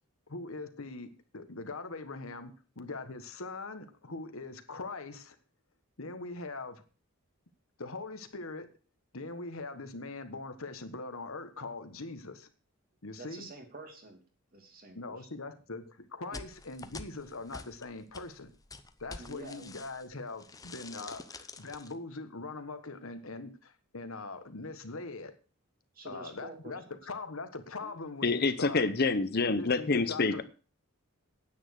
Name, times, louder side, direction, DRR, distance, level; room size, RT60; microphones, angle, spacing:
voice 1, 0.3-5.4 6.0-6.8 7.8-8.7 9.1-12.5 13.0-13.5 14.9-18.5 19.0-25.3 26.0-28.9 29.5-30.4, left 3 dB, 75° left, 9 dB, 1.5 m, -42 dB
voice 2, 13.2-14.2 14.5-15.3 16.3-16.4 19.2-19.7 25.9-27.0, right 2 dB, 45° right, 4 dB, 2.7 m, -48 dB
sound 1, 16.3-20.1 20.4-21.9, left 3 dB, 15° left, 0.8 m, -47 dB
voice 3, 28.2-30.4, left 3 dB, 45° left, 12 dB, 0.8 m, -27 dB
10.0 x 9.0 x 6.4 m, 0.37 s
head